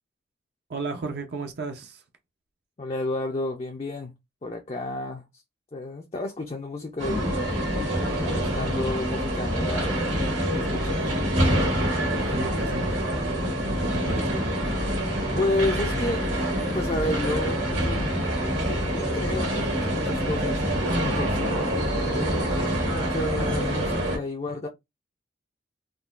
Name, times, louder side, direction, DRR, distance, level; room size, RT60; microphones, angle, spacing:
voice 1, 0.7-2.0 12.1-14.5, right 3 dB, 60° right, 0.5 m, -35 dB
voice 2, 2.8-4.1 4.4-5.2 5.7-7.5 8.2-11.1 15.4-16.2 16.7-18.2 18.7-22.5 22.9-24.7, left 2 dB, 30° left, 0.4 m, -31 dB
sound 1, 7.0-24.2, equal, 80° right, 1.7 m, -26 dB
3.7 x 2.3 x 2.3 m
head